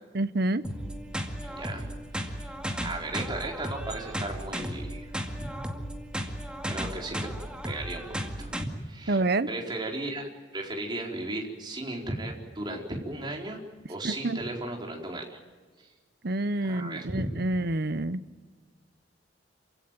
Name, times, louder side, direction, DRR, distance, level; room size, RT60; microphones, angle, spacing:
voice 1, 0.1-0.6 9.1-9.5 14.0-14.4 16.2-18.2, right 2 dB, 60° right, 1.0 m, -28 dB
sound 1, 0.6-8.6, equal, 5° right, 2.2 m, -35 dB
voice 2, 1.4-1.9 2.1-2.4 2.8-5.1 6.6-7.3 7.6-9.2 9.5-10.3 10.5-13.6 13.9-15.4 16.6-17.3, right 2 dB, 25° right, 4.5 m, -36 dB
28.0 x 17.0 x 9.2 m
head